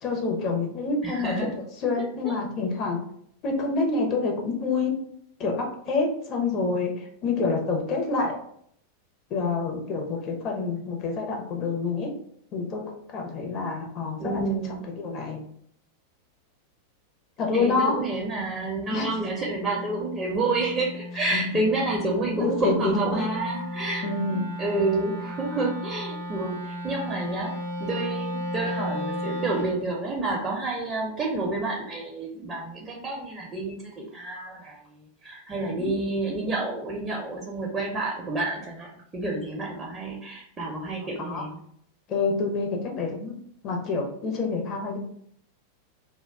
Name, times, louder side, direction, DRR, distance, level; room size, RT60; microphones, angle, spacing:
voice 1, 0.0-3.0 3.4-5.0 5.4-8.4 9.3-12.1 12.5-14.4 15.0-15.4 17.4-18.0 18.9-19.2 21.3-21.5 22.4-23.3 24.0-24.5 35.8-35.9 41.2-41.4 42.1-43.4 43.6-45.0, left 4 dB, 35° left, 1 dB, 0.6 m, -27 dB
voice 2, 1.0-1.5 14.2-14.8 17.5-34.8 35.2-41.6, right 2 dB, 20° right, -1 dB, 0.5 m, -29 dB
Wind instrument woodwind instrument, 18.3-29.9, left 1 dB, 90° left, 1.1 m, -35 dB
2.2 x 2.1 x 3.3 m, 0.67 s
figure-of-eight pair, 90°, 0 cm